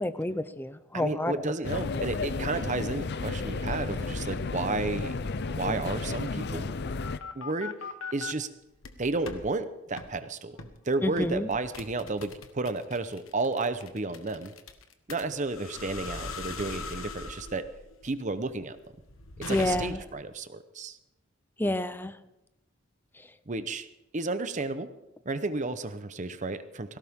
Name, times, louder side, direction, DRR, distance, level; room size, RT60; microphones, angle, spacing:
voice 1, 0.0-1.3 11.0-11.5 19.5-20.0 21.6-22.1, left 1 dB, 10° left, 12 dB, 0.6 m, -29 dB
voice 2, 0.9-5.2 5.5-6.7 7.3-7.7 8.1-8.5 9.0-14.5 15.1-17.7 18.0-18.8 19.4-21.0 23.5-23.9 24.1-24.9 25.2-27.0, right 3 dB, 35° right, 11 dB, 0.9 m, -32 dB
sound 1, 1.6-7.2, left 3 dB, 55° left, 0.6 m, -32 dB
sound 2, 6.6-8.3 8.8-9.4 10.0-10.1 10.6-10.8 11.2-20.2, left 4 dB, 80° left, 1.3 m, -40 dB
18.0 x 16.5 x 3.7 m, 0.92 s
head